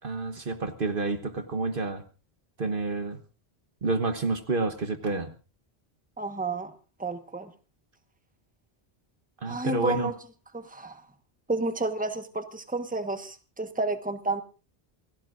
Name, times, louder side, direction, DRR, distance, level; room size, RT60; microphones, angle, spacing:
voice 1, 0.0-2.0 2.6-3.2 3.8-5.3 9.4-10.1, right 3 dB, 55° right, 9 dB, 1.3 m, -29 dB
voice 2, 6.2-6.7 7.0-7.5 9.5-10.1 10.5-11.0 11.5-14.4, right 3 dB, 10° right, 7 dB, 1.3 m, -30 dB
28.0 x 17.0 x 2.6 m, 0.35 s
omnidirectional pair, 1.1 m